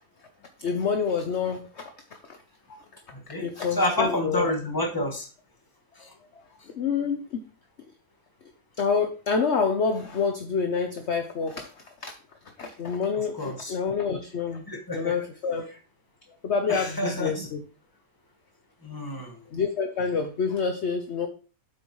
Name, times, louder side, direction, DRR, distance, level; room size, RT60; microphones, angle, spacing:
voice 1, 0.6-1.9 2.3-2.4 2.7-2.8 3.4-4.5 6.7-7.4 8.8-11.7 12.0-12.1 12.6-14.7 14.9-15.6 16.4-17.6 19.2-21.3, left 5 dB, 50° left, 6 dB, 0.9 m, -27 dB
voice 2, 3.1-5.3 6.0-6.1 13.2-13.7 14.7-15.1 16.7-17.5 18.8-19.3, left 1 dB, 15° left, 1 dB, 1.6 m, -29 dB
9.4 x 8.0 x 3.1 m, 0.36 s
omnidirectional pair, 1.8 m